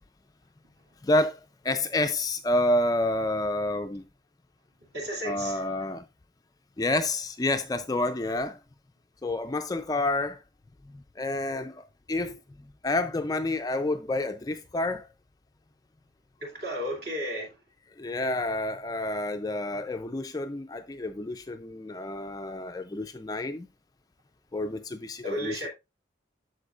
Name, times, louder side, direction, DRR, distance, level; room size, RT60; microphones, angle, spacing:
voice 1, 1.0-1.4 1.6-4.0 5.2-6.0 6.8-8.6 9.2-10.4 11.2-12.4 12.8-15.0 18.0-23.7 24.5-25.7, left 2 dB, 20° left, 0.3 m, -29 dB
voice 2, 4.9-5.8 16.4-17.6 25.2-25.7, equal, 50° right, 2.4 m, -33 dB
13.0 x 4.4 x 2.3 m
head